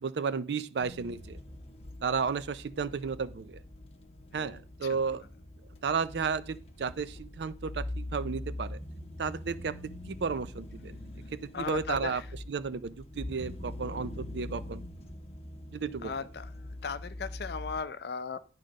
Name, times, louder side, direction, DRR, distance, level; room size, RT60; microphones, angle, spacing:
voice 1, 0.0-1.4 2.0-3.6 4.3-5.2 5.8-8.8 9.2-9.7 10.1-11.0 11.6-12.2 12.5-14.8 15.7-16.1, right 5 dB, 70° right, 0.4 m, -33 dB
sound 1, 0.8-17.8, left 1 dB, 35° left, 0.9 m, -43 dB
voice 2, 4.3-5.0 11.5-12.3 16.0-16.5 16.8-18.4, left 5 dB, 60° left, 0.5 m, -37 dB
9.5 x 3.8 x 5.2 m
head